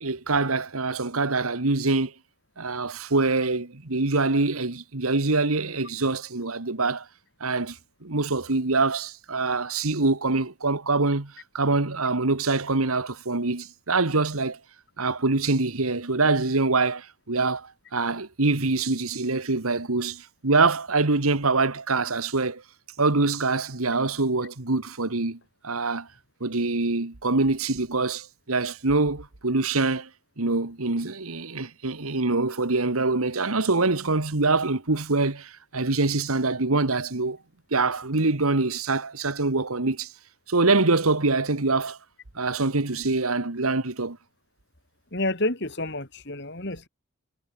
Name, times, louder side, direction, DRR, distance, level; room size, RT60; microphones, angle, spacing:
voice 1, 0.0-2.1 2.6-7.1 7.4-14.6 15.0-22.6 23.0-26.1 26.4-30.1 30.4-37.4 37.7-40.1 40.5-42.0 42.4-44.2, right 3 dB, 85° right, 1.8 m, -24 dB
voice 2, 45.1-46.9, left 2 dB, 50° left, 3.4 m, -29 dB
head